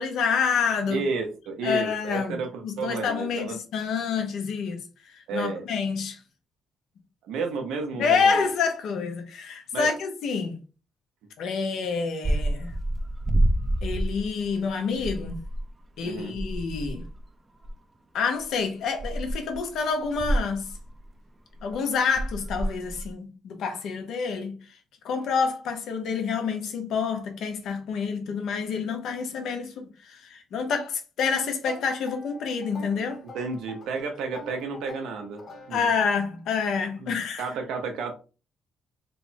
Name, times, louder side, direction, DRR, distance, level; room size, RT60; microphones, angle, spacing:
voice 1, 0.0-1.0 1.6-4.8 5.0-6.2 8.0-10.6 11.4-12.7 13.8-15.4 16.0-17.0 18.1-20.7 21.6-24.6 25.0-33.2 35.7-37.5, left 5 dB, 75° left, 1.0 m, -28 dB
voice 2, 0.9-3.6 5.3-5.7 7.2-8.5 9.7-9.9 16.0-16.4 33.3-35.4 35.7-35.9 37.0-38.1, right 4 dB, 85° right, 1.0 m, -32 dB
sound 1, 12.2-14.7 15.0-15.7 16.0-16.1 16.4-17.2 17.6-17.7 18.4-18.5 19.0-19.6 20.0-21.1 21.6-21.7 22.2-23.1, right 1 dB, 25° right, 0.6 m, -28 dB
sound 2, 31.6-36.3, left 1 dB, 45° left, 1.5 m, -45 dB
3.3 x 2.1 x 4.1 m
cardioid pair, 90°, 0 cm